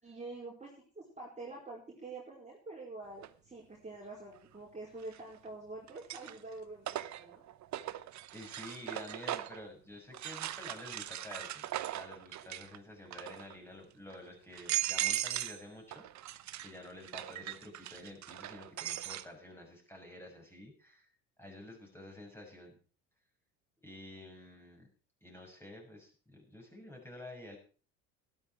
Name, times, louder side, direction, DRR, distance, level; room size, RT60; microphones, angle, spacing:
voice 1, 0.0-7.4, right 3 dB, 15° right, -3 dB, 4.8 m, -47 dB
sound 1, 3.2-3.3 5.0-5.5 5.9-9.6 10.1-12.8 13.1-13.6 14.1-14.2 14.5-15.6 15.9-19.3, right 13 dB, 40° right, 0.9 m, -39 dB
voice 2, 8.3-21.1 21.4-22.8 23.8-24.9 25.2-27.6, left 1 dB, 5° left, 0 dB, 6.7 m, -50 dB
13.0 x 12.5 x 4.7 m, 0.39 s
hypercardioid pair, 65°, 42 cm